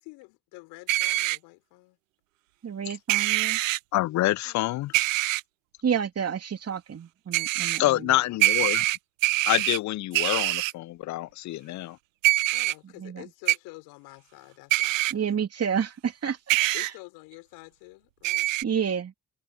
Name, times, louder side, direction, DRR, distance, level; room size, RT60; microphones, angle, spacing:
voice 1, 0.0-2.0 4.4-4.8 7.9-8.8 12.5-15.3 16.7-18.5, left 25 dB, 75° left, 5.6 m, -48 dB
sound 1, 0.9-1.4 3.1-3.8 4.9-5.4 7.3-7.8 8.4-9.8 10.1-10.7 12.2-12.7 13.5-13.6 14.7-15.1 16.5-16.9 18.2-18.6, right 18 dB, 85° right, 0.6 m, -24 dB
voice 2, 2.6-3.6 5.8-8.1 13.0-13.2 15.1-16.9 18.6-19.1, right 7 dB, 40° right, 2.7 m, -30 dB
voice 3, 3.9-4.9 7.8-8.8 9.5-12.0, left 17 dB, 50° left, 0.5 m, -26 dB
hypercardioid pair, 50°, 38 cm